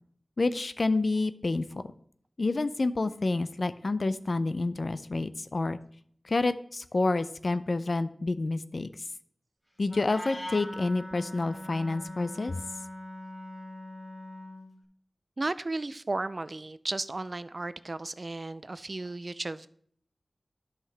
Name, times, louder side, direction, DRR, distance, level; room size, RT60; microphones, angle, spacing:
voice 1, 0.4-1.6 2.4-5.8 6.2-8.9 9.8-12.6, left 3 dB, 65° left, 13 dB, 0.4 m, -28 dB
Wind instrument woodwind instrument, 9.8-14.7, left 1 dB, 5° left, 1.8 m, -41 dB
voice 2, 15.4-19.7, right 2 dB, 50° right, 15 dB, 0.4 m, -34 dB
11.0 x 5.8 x 3.3 m, 0.62 s
wide cardioid pair, 60°, 0 cm